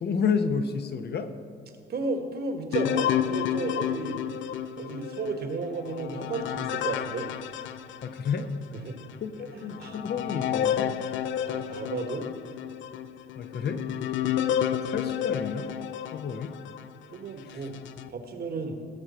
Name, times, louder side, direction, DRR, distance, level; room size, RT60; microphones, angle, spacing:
voice 1, 0.0-1.3 8.0-8.5 9.2-10.9 13.4-13.8 14.9-15.7 16.1-16.6 17.5-17.6, left 6 dB, 55° left, 8 dB, 1.0 m, -30 dB
voice 2, 1.9-4.2 4.8-7.3 8.8-9.0 9.4-10.0 11.4-12.3 17.1-17.7 18.1-18.8, right 3 dB, 55° right, 5 dB, 1.5 m, -33 dB
sound 1, 2.7-8.5 9.0-9.1 9.7-16.9 17.5-18.1, left 10 dB, 70° left, 0.4 m, -31 dB
16.5 x 6.6 x 4.4 m, 2.3 s
cardioid pair, 90°, 20 cm